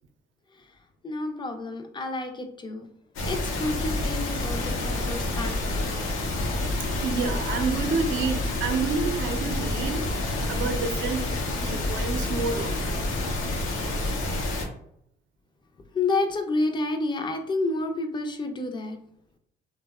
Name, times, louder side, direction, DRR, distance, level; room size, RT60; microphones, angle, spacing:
voice 1, 1.0-2.9 3.3-5.8 15.9-19.0, left 2 dB, 25° left, 6 dB, 0.4 m, -29 dB
sound 1, 3.2-14.7, left 2 dB, 80° left, 0.6 m, -28 dB
voice 2, 6.8-13.0, right 5 dB, 75° right, 5 dB, 0.5 m, -29 dB
2.6 x 2.1 x 2.3 m, 0.72 s
cardioid pair, 90°, 20 cm